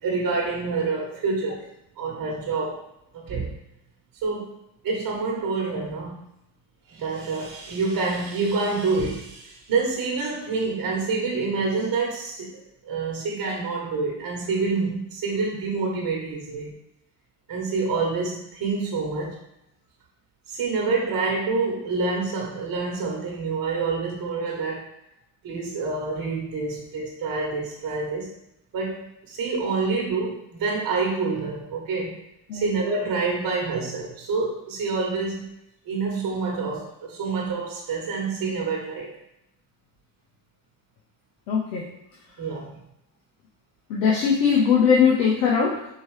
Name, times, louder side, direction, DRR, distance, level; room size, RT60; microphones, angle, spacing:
voice 1, 0.0-1.6 2.0-2.8 3.1-3.6 4.2-4.5 4.8-6.3 6.9-16.8 17.5-19.4 20.5-24.9 25.4-28.3 28.7-32.2 32.5-35.5 35.9-39.1 42.4-42.8, right 4 dB, 45° right, -2 dB, 1.1 m, -27 dB
voice 2, 41.5-41.9 43.9-45.9, left 6 dB, 85° left, -3 dB, 0.8 m, -20 dB
4.5 x 2.8 x 3.2 m, 0.83 s
hypercardioid pair, 75°, 48 cm